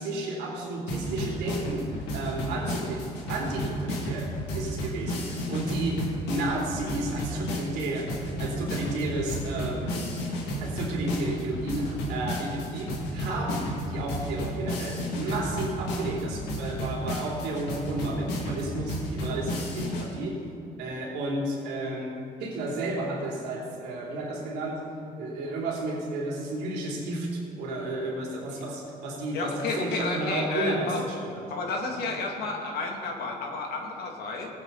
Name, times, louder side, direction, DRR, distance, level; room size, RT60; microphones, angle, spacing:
voice 1, 0.0-10.1 10.6-20.4 20.8-24.9 25.2-31.5 31.9-32.1, right 2 dB, 85° right, -3 dB, 3.4 m, -32 dB
sound 1, 0.9-20.1, equal, 90° left, 2.6 m, -32 dB
voice 2, 29.3-31.0 31.5-34.5, left 3 dB, 70° left, 1 dB, 2.4 m, -31 dB
19.0 x 9.2 x 4.2 m, 2.7 s
cardioid pair, 110°, 17 cm